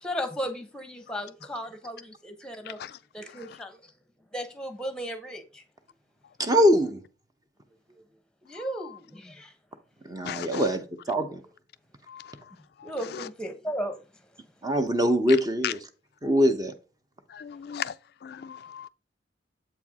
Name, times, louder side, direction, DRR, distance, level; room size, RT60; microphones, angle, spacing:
voice 1, 0.0-2.8 3.1-3.8 4.3-5.6 8.4-9.5 12.8-14.0, equal, 5° left, 1.1 m, -35 dB
voice 2, 2.6-3.0 3.3-3.6 8.5-9.0 10.2-10.7 12.1-13.3 15.3-15.7 17.3-18.9, left 9 dB, 60° left, 0.3 m, -38 dB
voice 3, 6.4-7.0 10.1-10.8 11.1-11.4 14.6-15.7 16.2-16.7, equal, 20° right, 0.8 m, -23 dB
7.9 x 4.6 x 3.6 m
head